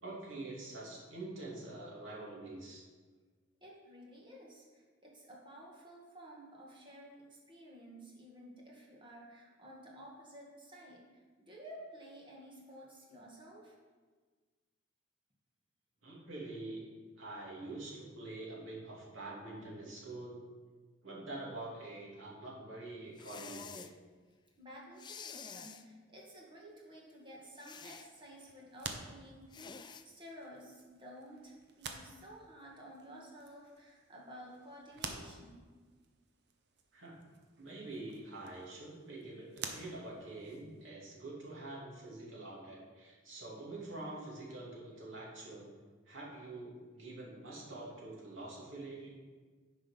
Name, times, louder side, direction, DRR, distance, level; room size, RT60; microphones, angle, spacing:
voice 1, 0.0-2.8 16.0-16.9 17.2-20.5 21.0-23.9 36.9-37.2 37.6-45.7 46.1-49.1, right 2 dB, 85° right, -4 dB, 2.7 m, -46 dB
voice 2, 3.6-13.8 24.6-35.6, equal, 25° right, -3 dB, 2.0 m, -53 dB
sound 1, 23.2-23.9 25.0-25.8 27.6-28.1 29.5-30.0, left 6 dB, 25° left, 0.3 m, -49 dB
sound 2, 28.0-40.9, right 5 dB, 60° right, 0.9 m, -51 dB
9.6 x 5.0 x 5.8 m, 1.4 s
head